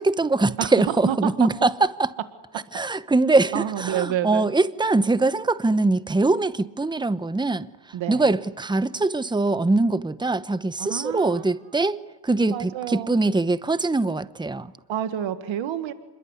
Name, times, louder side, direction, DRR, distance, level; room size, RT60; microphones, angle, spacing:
voice 1, 0.0-1.7 2.7-7.7 8.1-14.7, right 2 dB, 10° right, 0.9 m, -22 dB
voice 2, 0.6-1.5 3.3-4.5 7.9-8.3 10.8-11.4 12.5-13.2 14.9-15.9, right 10 dB, 85° right, 1.7 m, -29 dB
27.0 x 21.5 x 9.8 m
cardioid pair, 85°, 45 cm